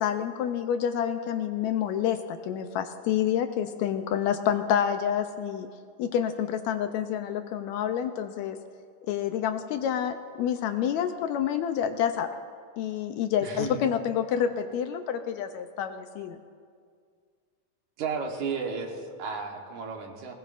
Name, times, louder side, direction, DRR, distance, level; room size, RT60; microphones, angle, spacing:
voice 1, 0.0-5.7 6.0-8.6 9.1-12.3 12.8-16.4, left 9 dB, 75° left, 8 dB, 1.8 m, -28 dB
voice 2, 13.4-13.8 18.0-20.3, right 5 dB, 75° right, 2 dB, 2.7 m, -33 dB
20.5 x 18.0 x 2.5 m, 2.1 s
omnidirectional pair, 3.5 m